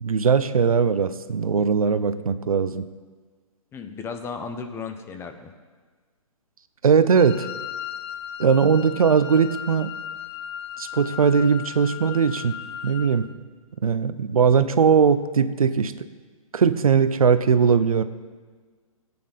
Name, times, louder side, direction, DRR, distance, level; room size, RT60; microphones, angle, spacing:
voice 1, 0.0-2.9 6.8-7.5 8.4-9.9 10.8-12.6 12.8-13.3 13.8-15.9 16.5-18.0, right 6 dB, 75° right, 12 dB, 0.7 m, -19 dB
voice 2, 3.7-5.5, left 5 dB, 15° left, 6 dB, 0.9 m, -34 dB
Wind instrument woodwind instrument, 7.2-13.2, left 9 dB, 45° left, 0.9 m, -36 dB
17.5 x 8.6 x 4.1 m, 1.5 s
figure-of-eight pair, 130°, 18 cm